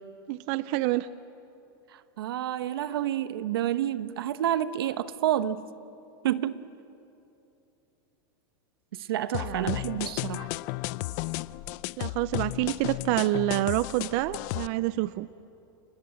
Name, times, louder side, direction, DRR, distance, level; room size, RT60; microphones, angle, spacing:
voice 1, 0.3-1.1 9.4-9.8 12.0-15.3, right 17 dB, 50° right, 16 dB, 0.5 m, -27 dB
voice 2, 2.2-5.6 6.2-6.6 8.9-10.5, right 11 dB, 85° right, 13 dB, 1.1 m, -29 dB
sound 1, 9.3-14.7, left 20 dB, 50° left, 0.5 m, -34 dB
29.0 x 20.5 x 7.7 m, 2.8 s
supercardioid pair, 145°, 12 cm